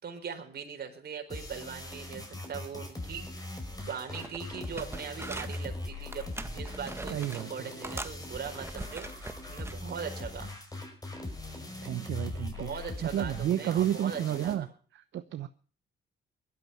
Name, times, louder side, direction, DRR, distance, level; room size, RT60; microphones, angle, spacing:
voice 1, 0.0-3.5 3.8-10.5 12.6-14.7, right 6 dB, 55° right, 4 dB, 4.5 m, -40 dB
sound 1, 1.3-14.5, left 2 dB, 20° left, 5.4 m, -41 dB
sound 2, 3.7-3.9 4.1-5.7 6.1-7.5 7.8-9.8 10.3-10.5, right 2 dB, 10° right, 1.5 m, -42 dB
voice 2, 7.1-7.7 11.8-12.7 13.0-14.7 15.1-15.5, right 11 dB, 70° right, 11 dB, 1.0 m, -31 dB
18.0 x 12.5 x 5.8 m, 0.43 s
cardioid pair, 90°, 20 cm